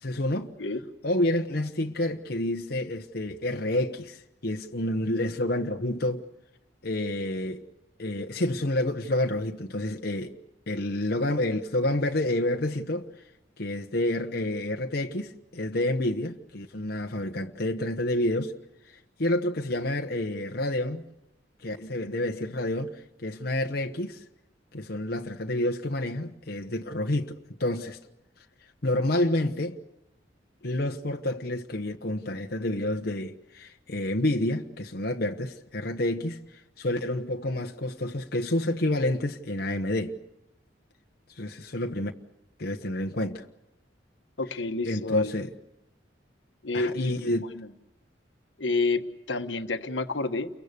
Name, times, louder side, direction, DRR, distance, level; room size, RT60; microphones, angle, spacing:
voice 1, 0.0-0.5 1.0-6.2 6.8-7.6 8.0-10.4 10.7-13.1 13.6-18.5 18.9-21.0 21.6-24.2 24.7-28.0 28.8-29.8 30.6-40.1 41.4-42.1 42.6-43.4 44.8-45.5 46.7-47.5, left 1 dB, 55° left, 1.2 m, -29 dB
voice 2, 44.4-45.4 46.6-47.3 47.5-47.7 48.6-50.5, left 3 dB, 80° left, 1.3 m, -29 dB
29.5 x 23.0 x 6.8 m
head